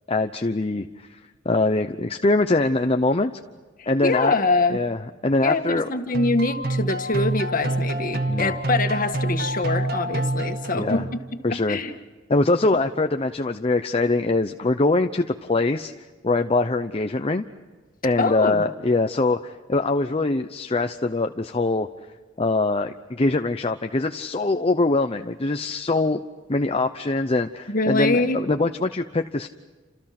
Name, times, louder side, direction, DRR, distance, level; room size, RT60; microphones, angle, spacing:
voice 1, 0.1-1.2 1.4-3.3 3.9-4.4 4.7-5.9 8.3-8.5 10.7-11.1 11.4-11.8 12.3-15.9 16.2-17.4 18.0-21.9 22.4-26.2 26.5-29.5, left 2 dB, 30° left, 6 dB, 0.8 m, -23 dB
voice 2, 3.8-4.8 5.4-11.2 11.5-11.9 18.2-18.7 27.7-28.4, left 3 dB, 45° left, 6 dB, 1.9 m, -24 dB
sound 1, 6.1-11.3, right 1 dB, 55° right, 1.8 m, -27 dB
30.0 x 27.5 x 6.0 m, 1.3 s
head